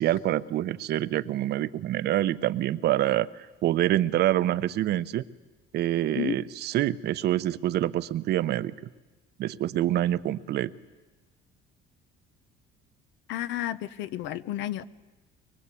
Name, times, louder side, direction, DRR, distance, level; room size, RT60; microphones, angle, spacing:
voice 1, 0.0-5.2 5.7-8.7 9.4-10.7, right 13 dB, 60° right, 14 dB, 0.8 m, -26 dB
voice 2, 13.3-14.8, left 13 dB, 75° left, 15 dB, 1.0 m, -31 dB
23.5 x 23.0 x 8.4 m, 1.2 s
cardioid pair, 135°, 19 cm